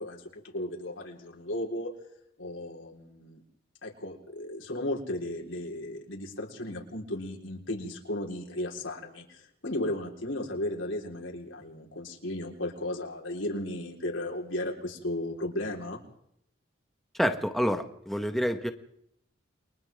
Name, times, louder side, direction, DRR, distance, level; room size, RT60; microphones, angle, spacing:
voice 1, 0.0-1.9 2.4-3.4 3.8-16.0, left 1 dB, 80° left, -1 dB, 4.5 m, -35 dB
voice 2, 17.1-18.7, equal, ahead, 6 dB, 1.4 m, -28 dB
29.5 x 24.0 x 3.7 m, 0.73 s
head